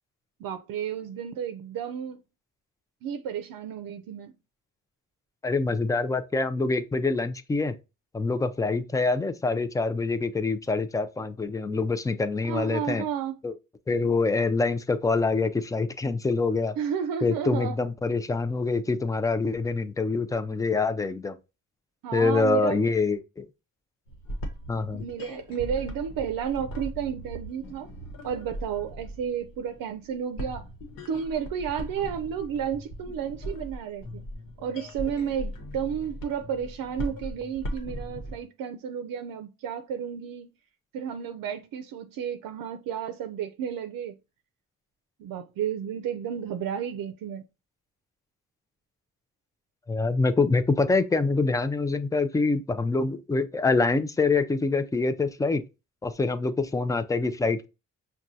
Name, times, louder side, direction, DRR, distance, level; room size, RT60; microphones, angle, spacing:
voice 1, 0.4-2.2 3.0-4.3 12.4-13.4 16.8-17.8 22.0-22.8 24.9-27.9 28.2-30.7 31.1-34.2 34.6-40.5 40.9-44.2 45.2-47.4, right 8 dB, 85° right, 0.5 m, -32 dB
voice 2, 5.4-7.7 8.1-13.0 13.4-13.5 13.9-16.7 17.2-21.4 22.1-23.5 24.7-25.0 49.9-55.6 56.0-57.7, left 3 dB, 10° left, 0.3 m, -25 dB
sound 1, 24.1-38.4, equal, 85° left, 1.1 m, -39 dB
6.0 x 2.3 x 2.6 m
cardioid pair, 105°, 33 cm